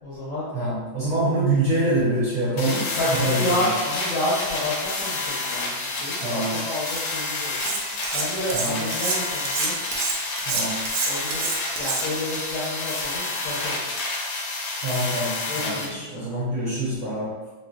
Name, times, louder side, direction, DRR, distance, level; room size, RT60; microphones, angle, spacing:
voice 1, 0.0-0.5 2.9-7.8 8.1-9.7 11.1-11.5 11.8-14.1 15.5-16.4, left 1 dB, 65° left, -7 dB, 0.8 m, -30 dB
voice 2, 0.5-3.5 6.2-6.5 8.5-8.8 10.5-10.7 14.8-17.3, right 1 dB, 65° right, -8 dB, 1.1 m, -25 dB
sound 1, 2.6-15.9, left 3 dB, 85° left, 1.3 m, -29 dB
Cutlery silverware, 7.6-8.2 8.5-12.3, right 4 dB, 90° right, 1.3 m, -27 dB
3.0 x 2.6 x 2.3 m, 1.2 s
omnidirectional pair, 2.0 m